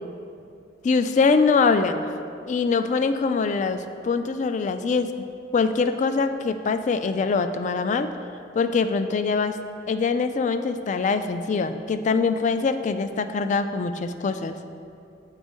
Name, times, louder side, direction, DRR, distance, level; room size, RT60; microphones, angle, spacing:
voice 1, 0.8-2.0 2.5-5.1 5.5-8.1 8.5-9.6 9.9-14.6, left 4 dB, 40° left, 10 dB, 0.3 m, -23 dB
7.4 x 4.3 x 5.3 m, 2.5 s
head